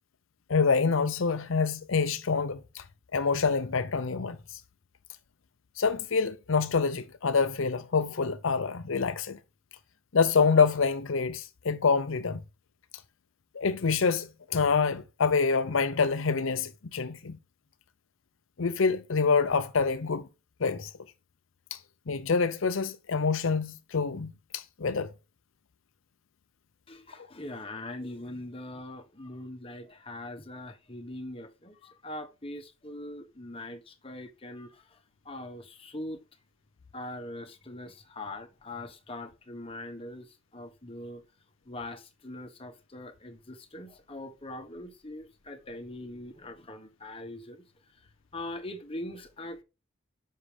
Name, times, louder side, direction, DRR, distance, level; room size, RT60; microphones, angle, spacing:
voice 1, 0.5-2.8 3.1-4.6 5.8-9.4 10.1-12.4 13.5-17.4 18.6-20.3 20.6-20.9 21.7-21.8 22.1-25.1, left 5 dB, 70° left, 0.6 m, -26 dB
voice 2, 26.9-36.2 36.9-41.2 41.6-47.6 47.9-48.0 48.3-49.6, left 1 dB, 25° left, 1.3 m, -42 dB
9.7 x 6.6 x 3.4 m
head